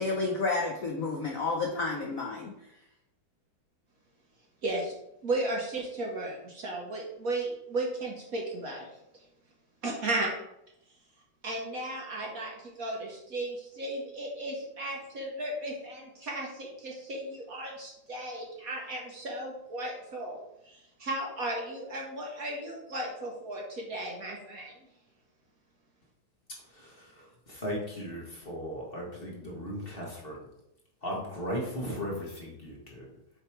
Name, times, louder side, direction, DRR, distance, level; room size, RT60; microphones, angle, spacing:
voice 1, 0.0-2.5, left 3 dB, 60° left, -1 dB, 0.9 m, -30 dB
voice 2, 4.6-4.9 5.2-9.0 9.8-10.3 11.4-20.4 20.6-24.7, right 2 dB, 50° right, -1 dB, 1.3 m, -35 dB
voice 3, 26.7-30.4 31.0-33.1, equal, 30° left, -2 dB, 1.4 m, -37 dB
7.7 x 3.4 x 4.5 m, 0.81 s
omnidirectional pair, 2.2 m